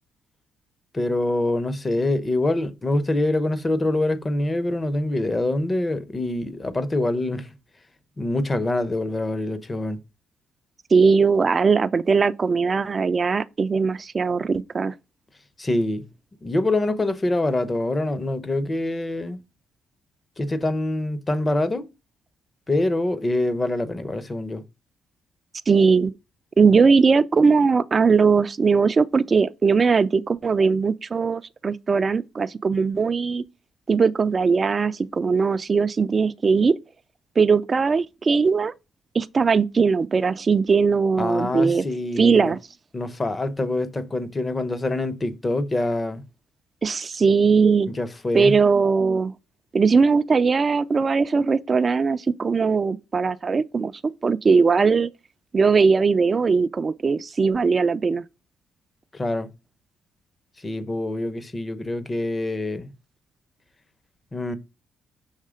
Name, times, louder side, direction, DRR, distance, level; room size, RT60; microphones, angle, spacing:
voice 1, 0.9-7.5 8.2-10.0 15.6-16.1 16.4-19.4 20.4-21.9 22.7-24.6 41.2-42.5 42.9-46.2 47.9-48.5 59.1-59.5 60.6-62.9 64.3-64.6, left 2 dB, 25° left, 0.9 m, -25 dB
voice 2, 10.9-14.9 25.7-26.1 26.6-33.4 33.9-36.8 37.4-38.7 39.1-41.8 42.2-42.6 46.8-47.9 48.3-49.3 49.7-53.9 54.2-55.1 55.5-58.2, right 5 dB, 35° right, 0.4 m, -20 dB
6.5 x 3.2 x 5.0 m
cardioid pair, 90°, 0 cm